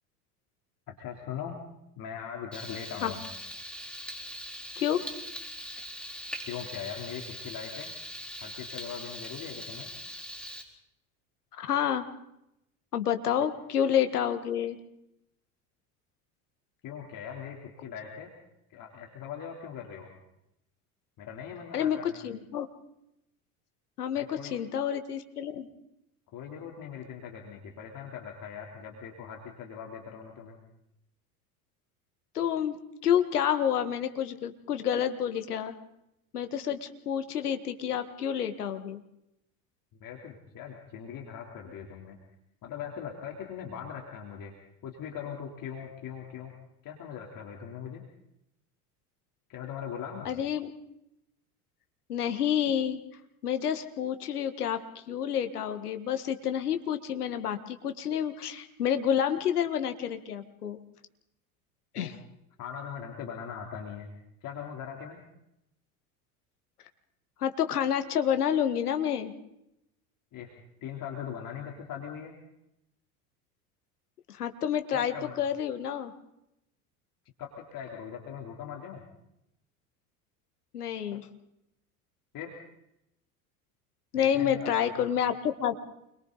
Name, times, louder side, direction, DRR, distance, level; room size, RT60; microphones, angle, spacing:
voice 1, 0.9-1.6 2.0-3.2 6.5-7.9 8.4-9.9 16.8-18.3 18.7-20.1 21.2-22.2 24.2-24.5 26.3-30.6 40.0-42.2 42.6-44.5 44.8-46.5 46.8-48.0 49.5-50.3 61.9-62.1 62.6-64.1 64.4-65.2 70.3-70.5 70.8-72.4 74.9-75.3 77.4-79.0 82.3-82.5 84.1-85.0, left 8 dB, 45° left, 0 dB, 3.7 m, -40 dB
Frying (food), 2.5-10.6, equal, ahead, 4.3 m, -41 dB
voice 2, 4.8-5.1 11.5-12.1 12.9-14.8 21.7-22.0 22.2-22.7 24.0-25.7 32.4-32.8 33.0-35.8 36.3-39.0 50.3-50.7 52.1-53.0 53.4-60.8 61.9-62.2 67.4-69.3 74.3-76.1 80.7-81.3 84.1-85.7, left 9 dB, 85° left, 8 dB, 1.8 m, -29 dB
29.0 x 22.5 x 4.1 m, 0.82 s
hypercardioid pair, 75°, 44 cm